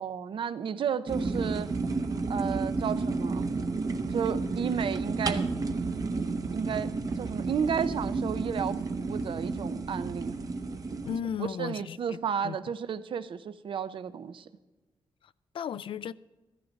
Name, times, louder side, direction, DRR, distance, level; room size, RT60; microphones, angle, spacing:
voice 1, 0.0-1.7 2.3-3.5 4.1-5.5 6.5-6.9 7.1-10.4 11.4-14.5, right 7 dB, 65° right, 0.6 m, -32 dB
sound 1, 1.1-11.2, right 3 dB, 40° right, 0.9 m, -31 dB
voice 2, 11.1-12.2 12.4-12.6 15.2-16.1, left 8 dB, 70° left, 0.4 m, -35 dB
14.5 x 14.0 x 4.1 m
wide cardioid pair, 135°, 9 cm